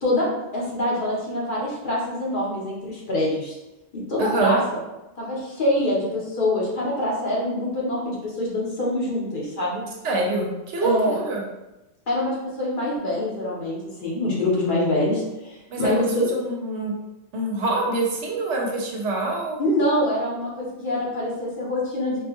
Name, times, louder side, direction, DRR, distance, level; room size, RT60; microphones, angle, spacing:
voice 1, 0.5-3.5 3.9-4.8 5.2-9.8 10.8-11.2 12.1-16.3 19.6-22.2, left 1 dB, 50° left, -5 dB, 0.9 m, -25 dB
voice 2, 4.2-4.6 10.0-11.4 15.7-16.9 17.3-19.6, right 2 dB, 75° right, -1 dB, 1.0 m, -25 dB
3.6 x 2.2 x 2.9 m, 0.99 s
omnidirectional pair, 1.2 m